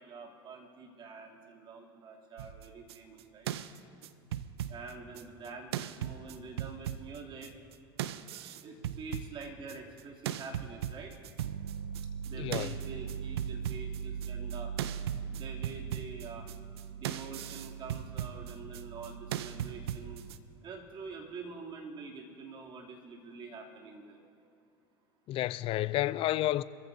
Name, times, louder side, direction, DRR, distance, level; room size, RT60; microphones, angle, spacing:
voice 1, 0.0-3.5 4.7-7.5 8.1-8.2 8.6-11.1 12.2-14.7 15.3-16.5 16.9-20.2 20.6-24.2, right 4 dB, 40° right, 2.9 m, -46 dB
sound 1, 2.4-5.5 5.7-7.7 8.0-10.0 10.3-20.4, right 9 dB, 80° right, 0.6 m, -38 dB
voice 2, 12.4-12.7 25.3-26.6, left 15 dB, 45° left, 0.5 m, -30 dB
25.5 x 15.0 x 2.7 m
hypercardioid pair, 95°, 13 cm